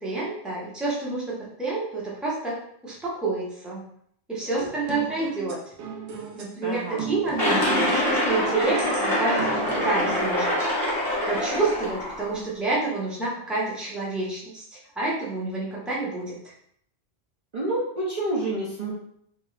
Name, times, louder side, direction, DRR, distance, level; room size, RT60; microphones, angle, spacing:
voice 1, 0.0-2.6 2.8-3.9 4.3-5.6 6.3-10.5 11.2-16.4, right 3 dB, ahead, -7 dB, 0.8 m, -28 dB
sound 1, 4.4-10.2, right 5 dB, 85° right, 0.9 m, -38 dB
voice 2, 6.6-7.0 17.5-18.9, right 2 dB, 45° right, -6 dB, 0.7 m, -28 dB
sound 2, 7.4-12.3, left 1 dB, 20° left, 1.3 m, -25 dB
2.9 x 2.6 x 3.2 m, 0.67 s
omnidirectional pair, 1.1 m